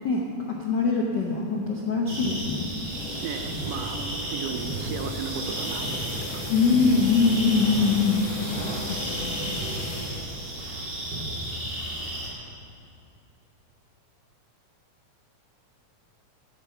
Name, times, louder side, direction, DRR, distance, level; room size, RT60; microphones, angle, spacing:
voice 1, 0.0-2.7 6.5-8.3 8.9-9.5, left 4 dB, 90° left, -1 dB, 0.9 m, -23 dB
sound 1, 2.1-12.3, right 1 dB, 40° right, 2.8 m, -33 dB
sound 2, 2.8-10.2, left 1 dB, 55° left, 2.9 m, -36 dB
voice 2, 3.2-6.6, right 6 dB, 75° right, 7 dB, 1.6 m, -35 dB
10.5 x 10.0 x 7.0 m, 2.6 s
omnidirectional pair, 3.4 m